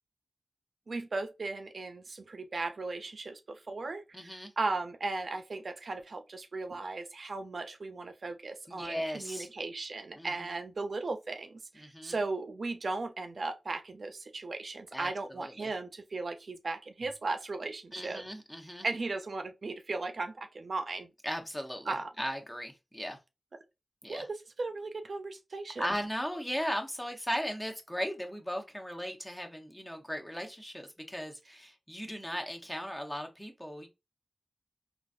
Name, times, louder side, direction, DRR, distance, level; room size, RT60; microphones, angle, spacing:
voice 1, 0.9-18.2 18.8-21.1 21.9-22.1 24.1-25.9, right 3 dB, 65° right, 0.4 m, -37 dB
voice 2, 4.1-4.5 8.7-9.5 10.1-10.5 11.8-12.1 14.9-15.1 15.4-15.7 17.9-18.8 21.2-23.2 24.0-24.2 25.8-33.9, equal, 10° left, 0.8 m, -37 dB
3.9 x 2.4 x 2.5 m
wide cardioid pair, 70°, 0 cm